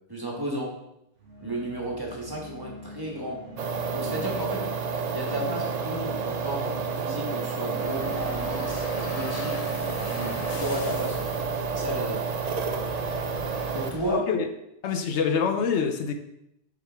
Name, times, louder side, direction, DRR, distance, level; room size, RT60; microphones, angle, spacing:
voice 1, 0.1-0.8 1.4-3.4 3.9-4.6 5.1-8.8 9.1-9.6 10.0-12.3 13.7-14.3, right 1 dB, 20° right, -2 dB, 1.2 m, -33 dB
sound 1, 1.1-12.7, left 1 dB, 80° right, 1.5 m, -44 dB
sound 2, 3.6-13.9, right 5 dB, 55° right, 0.4 m, -30 dB
sound 3, 7.8-14.2, left 5 dB, 55° left, 0.4 m, -40 dB
voice 2, 14.1-14.5 14.8-16.1, left 6 dB, 75° left, 7 dB, 0.9 m, -25 dB
7.2 x 4.8 x 3.4 m, 0.82 s
omnidirectional pair, 1.2 m